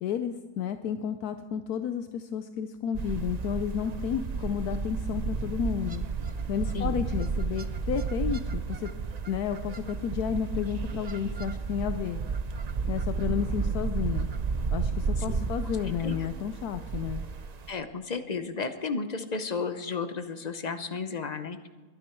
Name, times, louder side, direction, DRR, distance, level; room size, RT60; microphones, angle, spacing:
voice 1, 0.0-6.0 6.5-8.9 9.3-12.2 12.9-14.3 14.7-17.2, left 8 dB, 75° left, 9 dB, 1.2 m, -32 dB
sound 1, 2.9-17.7, right 5 dB, 60° right, 0.4 m, -32 dB
voice 2, 17.7-21.7, left 4 dB, 40° left, 9 dB, 0.6 m, -33 dB
22.0 x 9.5 x 4.5 m, 1.4 s
omnidirectional pair, 1.7 m